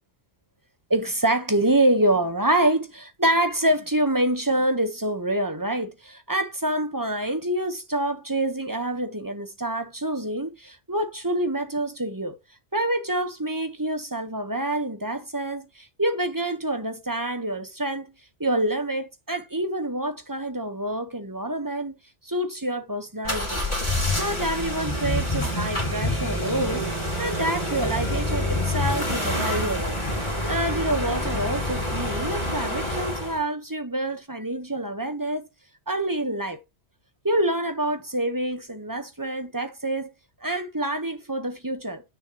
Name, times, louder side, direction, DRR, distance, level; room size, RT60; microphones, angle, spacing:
voice 1, 0.9-12.4 12.7-18.1 18.4-21.9 22.2-23.6 24.2-26.9 27.2-30.0 30.4-35.5 35.9-36.6 37.2-40.1 40.4-42.0, right 1 dB, 15° right, 1.2 m, -26 dB
sound 1, 23.2-33.4, left 1 dB, 25° left, 3.0 m, -27 dB
9.8 x 6.7 x 3.1 m
omnidirectional pair, 1.2 m